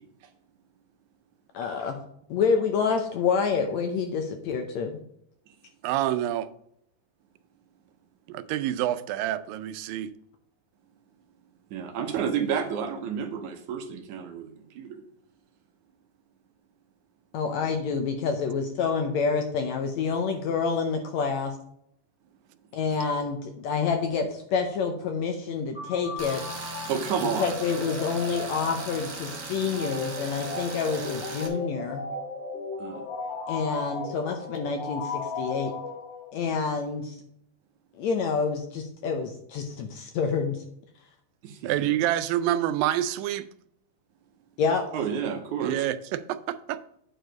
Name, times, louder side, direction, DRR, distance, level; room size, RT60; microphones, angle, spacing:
voice 1, 1.5-2.0 2.3-5.0 17.3-21.5 22.7-26.4 27.4-32.1 33.5-35.7 36.3-37.2 38.0-40.6 44.6-44.8, left 5 dB, 75° left, 1.7 m, -28 dB
voice 2, 5.8-6.5 8.3-10.1 41.6-43.5 45.6-46.8, right 12 dB, 85° right, 2.4 m, -27 dB
voice 3, 11.7-15.0 26.9-27.5 32.8-33.0 41.4-41.7 44.9-45.8, right 7 dB, 70° right, 2.1 m, -30 dB
sound 1, 25.7-36.5, left 3 dB, 40° left, 1.9 m, -36 dB
Tools, 26.2-31.5, right 3 dB, 45° right, 1.0 m, -38 dB
9.0 x 4.8 x 5.1 m
omnidirectional pair, 4.0 m